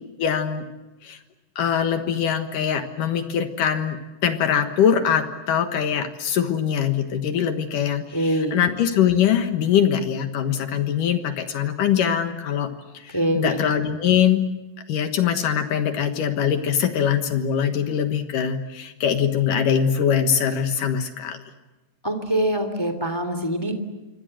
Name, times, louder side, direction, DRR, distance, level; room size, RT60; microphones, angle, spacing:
voice 1, 0.2-0.7 1.0-1.2 1.6-12.7 12.9-14.5 14.9-21.4, left 8 dB, 70° left, 7 dB, 2.9 m, -22 dB
voice 2, 8.1-8.6 13.1-13.6 22.0-23.8, right 1 dB, 5° left, 8 dB, 2.4 m, -24 dB
27.0 x 25.0 x 7.7 m, 1.1 s
omnidirectional pair, 4.0 m